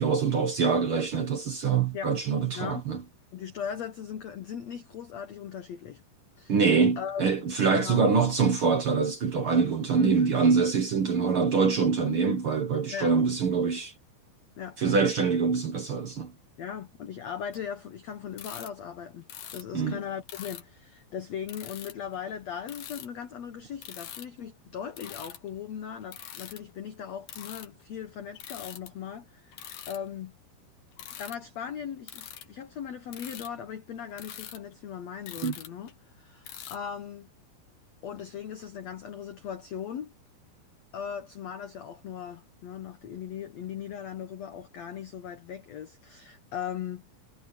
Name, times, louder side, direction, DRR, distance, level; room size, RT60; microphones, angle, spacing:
voice 1, 0.0-3.0 6.5-13.9 14.8-16.3 19.7-20.0 35.4-35.5, right 5 dB, 75° right, 1.2 m, -24 dB
voice 2, 2.5-2.9 3.3-6.0 6.4-6.6 7.0-7.2 7.7-8.1 10.0-10.3 12.9-13.2 14.6-14.8 16.6-30.3 31.2-35.9 36.2-37.3 38.0-40.1 40.9-47.1, left 8 dB, 80° left, 1.5 m, -38 dB
sound 1, 17.5-17.6 18.3-18.7 19.3-19.6 20.3-20.6 21.5-22.2 22.6-23.2 23.8-24.3 24.9-25.5 26.0-26.6 27.3-27.8 28.3-28.9 29.5-30.0 30.9-31.4 32.1-32.5 33.1-33.5 34.1-36.1 36.4-36.8, left 10 dB, 65° left, 3.1 m, -43 dB
omnidirectional pair, 4.8 m